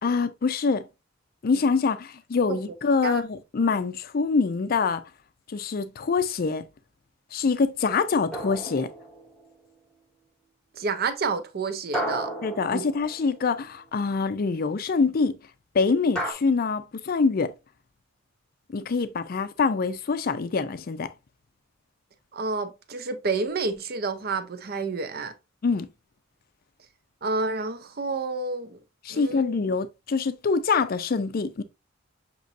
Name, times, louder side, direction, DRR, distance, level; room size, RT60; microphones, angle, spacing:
voice 1, 0.0-0.9 1.4-5.0 5.5-6.7 7.3-8.9 12.4-15.4 15.7-17.5 18.7-21.1 25.6-25.9 29.1-31.6, left 4 dB, 50° left, 0.4 m, -25 dB
sound 1, 8.3-9.5 11.9-13.6 16.1-16.3, right 1 dB, 5° left, 1.0 m, -33 dB
voice 2, 10.7-12.3 12.7-12.8 22.3-25.3 27.2-28.8 29.1-29.5, right 4 dB, 50° right, 0.6 m, -29 dB
6.4 x 3.0 x 2.5 m
head